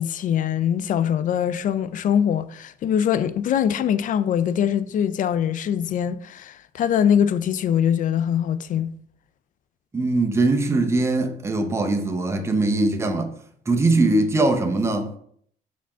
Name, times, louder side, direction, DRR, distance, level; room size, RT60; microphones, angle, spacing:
voice 1, 0.0-8.9, left 9 dB, 50° left, 0.4 m, -23 dB
voice 2, 9.9-13.3 13.7-15.1, right 2 dB, 15° right, 0.7 m, -21 dB
5.0 x 3.5 x 5.5 m
cardioid pair, 110°, 17 cm